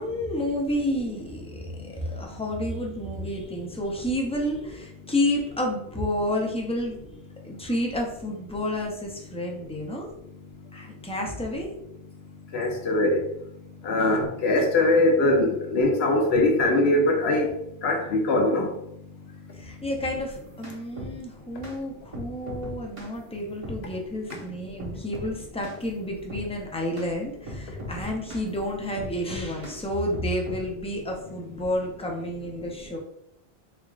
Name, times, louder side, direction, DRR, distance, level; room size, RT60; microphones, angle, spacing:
voice 1, 0.0-7.0 7.4-10.1 10.7-11.7 12.9-13.0 19.5-33.0, left 1 dB, 10° left, 0 dB, 0.4 m, -30 dB
voice 2, 12.5-13.2 13.8-17.5 17.8-18.7, left 2 dB, 75° left, 2 dB, 1.0 m, -21 dB
sound 1, 20.3-21.2 21.6-21.8 22.1-23.1 23.6-23.8 24.3-24.5 24.8-25.3 25.6-25.8 26.3-26.5 27.0-27.1 27.5-28.5 29.0-29.8 30.1-30.7, equal, 35° right, 0.9 m, -38 dB
3.5 x 3.5 x 2.4 m, 0.74 s
omnidirectional pair, 1.1 m